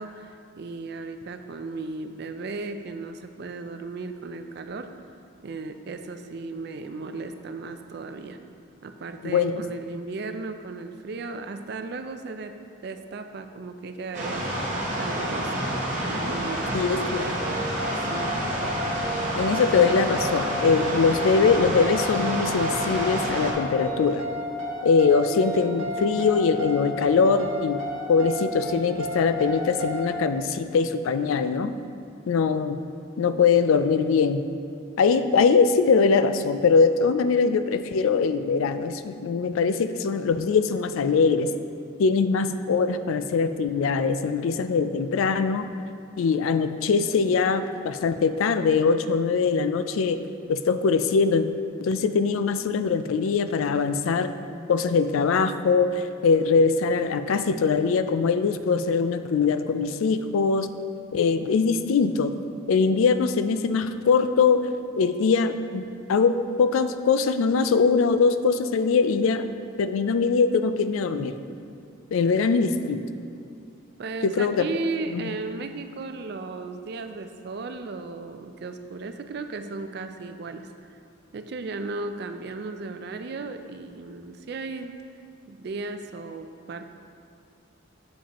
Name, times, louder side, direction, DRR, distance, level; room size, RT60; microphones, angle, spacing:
voice 1, 0.0-4.9 5.4-8.4 8.8-12.6 12.8-15.7 16.0-17.4 18.0-18.4 74.0-81.0 81.3-84.9 85.5-86.9, right 3 dB, 50° right, 8 dB, 0.4 m, -35 dB
voice 2, 9.2-9.6 16.7-17.5 19.4-24.2 24.8-27.8 28.1-31.7 32.3-32.8 33.2-34.4 35.0-41.5 42.0-45.7 46.2-50.2 50.5-51.5 51.8-54.3 54.7-60.7 61.1-62.3 62.7-64.6 64.9-65.8 66.1-69.5 69.8-71.3 72.1-73.0 74.2-74.7 75.1-75.3, left 5 dB, 80° left, 10 dB, 0.3 m, -22 dB
sound 1, 14.1-23.5, right 1 dB, 35° right, 1.0 m, -29 dB
sound 2, 17.4-30.2, left 1 dB, 80° right, 0.8 m, -33 dB
7.3 x 7.1 x 2.9 m, 2.4 s
head